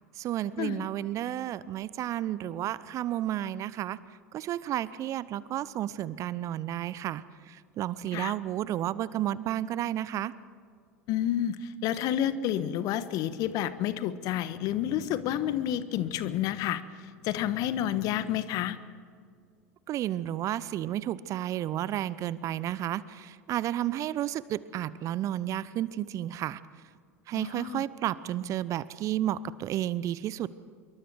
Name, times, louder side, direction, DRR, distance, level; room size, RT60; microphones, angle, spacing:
voice 1, 0.2-4.0 4.3-10.3 19.9-26.6 27.3-30.5, right 12 dB, 40° right, 18 dB, 0.8 m, -32 dB
voice 2, 11.1-18.8 27.3-27.8, left 11 dB, 50° left, 14 dB, 1.3 m, -30 dB
26.0 x 23.0 x 4.7 m, 2.1 s
figure-of-eight pair, 80°, 8 cm